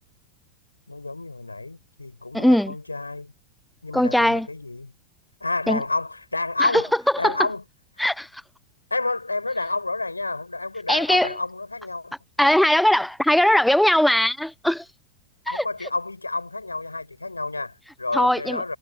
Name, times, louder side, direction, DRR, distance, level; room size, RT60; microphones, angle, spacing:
voice 1, 0.9-3.3 3.8-4.9 5.4-6.9 7.2-7.6 8.9-12.1 15.5-18.8, left 3 dB, 80° left, 7.0 m, -29 dB
voice 2, 2.3-2.7 3.9-4.5 5.7-5.8 6.6-6.8 7.2-7.4 8.0-8.4 10.9-11.3 12.4-14.8 15.5-15.6 18.1-18.6, left 1 dB, ahead, 1.2 m, -20 dB
figure-of-eight pair, 90°, 0 cm